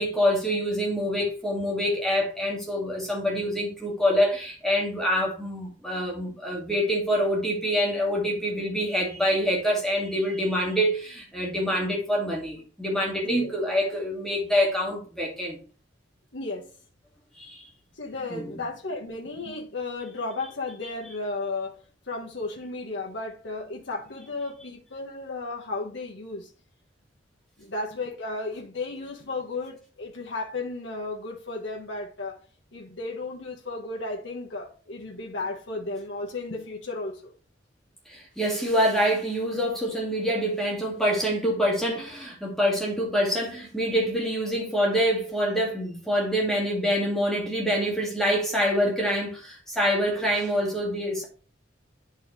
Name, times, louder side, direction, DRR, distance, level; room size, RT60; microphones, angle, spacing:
voice 1, 0.0-15.6 17.4-17.6 18.3-18.4 38.1-51.3, equal, 5° left, 2.1 m, -26 dB
voice 2, 16.3-16.7 18.0-21.8 22.1-26.5 27.6-32.4 32.7-37.3, left 3 dB, 75° left, 1.3 m, -34 dB
10.0 x 4.5 x 3.2 m
head